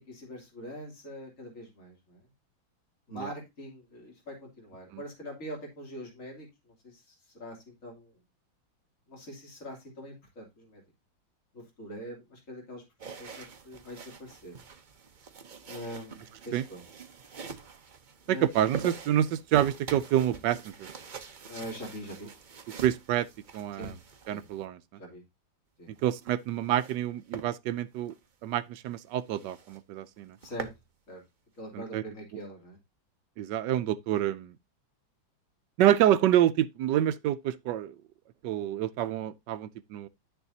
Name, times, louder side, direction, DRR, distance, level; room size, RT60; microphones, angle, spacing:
voice 1, 0.0-2.3 3.1-8.1 9.1-10.8 11.5-14.6 15.7-16.8 18.3-18.5 21.5-22.3 23.7-23.9 24.3-24.4 25.0-25.2 25.8-25.9 30.4-30.7 31.1-31.2 31.5-32.8, equal, 40° left, 3.2 m, -43 dB
sound 1, 13.0-24.7 26.0-27.0 27.3-27.5 28.0-28.2 28.6-28.7 28.9-29.0 29.3-29.8 30.2-30.8, right 6 dB, 50° right, 0.5 m, -44 dB
voice 2, 18.3-20.9 22.8-23.3 23.5-23.9 24.3-24.8 26.0-28.1 28.4-30.4 31.7-32.0 33.4-34.6 35.8-38.0 38.4-40.1, right 11 dB, 75° right, 1.1 m, -27 dB
10.0 x 6.8 x 2.7 m
omnidirectional pair, 2.1 m